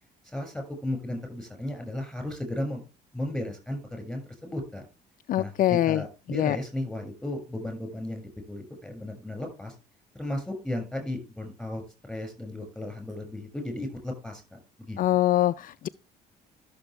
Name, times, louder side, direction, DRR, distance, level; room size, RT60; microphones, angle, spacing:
voice 1, 0.2-2.8 3.1-4.8 5.4-9.7 10.1-11.8 12.1-15.0, left 1 dB, ahead, 6.6 m, -35 dB
voice 2, 5.3-6.0 6.3-6.6 15.0-15.9, left 13 dB, 55° left, 0.4 m, -23 dB
13.0 x 7.1 x 3.4 m
cardioid pair, 110°, 17 cm